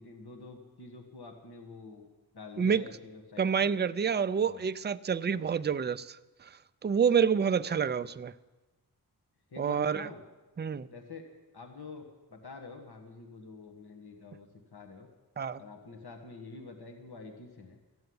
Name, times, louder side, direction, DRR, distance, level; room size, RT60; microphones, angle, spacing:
voice 1, 0.0-2.1 2.3-3.7 4.4-4.7 5.3-5.7 7.7-7.9 9.5-10.2 10.9-11.3 11.5-15.1 15.6-17.8, left 4 dB, 70° left, 1.6 m, -47 dB
voice 2, 3.4-6.1 6.8-8.3 9.6-10.1 10.6-10.9 15.4-15.6, right 7 dB, 30° right, 0.4 m, -28 dB
14.0 x 7.9 x 9.4 m
wide cardioid pair, 80°, 39 cm